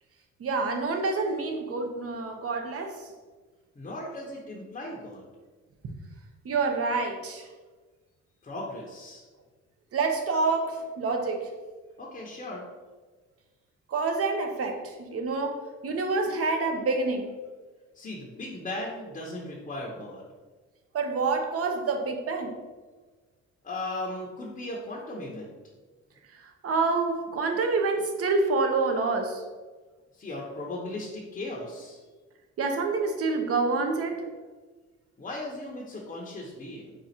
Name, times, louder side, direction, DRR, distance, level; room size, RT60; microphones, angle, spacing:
voice 1, 0.4-3.1 6.4-7.5 9.9-11.5 13.9-17.3 20.9-22.5 26.3-29.4 32.6-34.2, right 3 dB, 50° right, 4 dB, 0.7 m, -27 dB
voice 2, 3.7-5.3 8.4-9.3 12.0-12.7 17.9-20.2 23.6-25.5 30.1-32.0 35.2-36.9, left 1 dB, 25° left, -2 dB, 0.7 m, -37 dB
4.2 x 2.4 x 4.1 m, 1.3 s
cardioid pair, 90°, 30 cm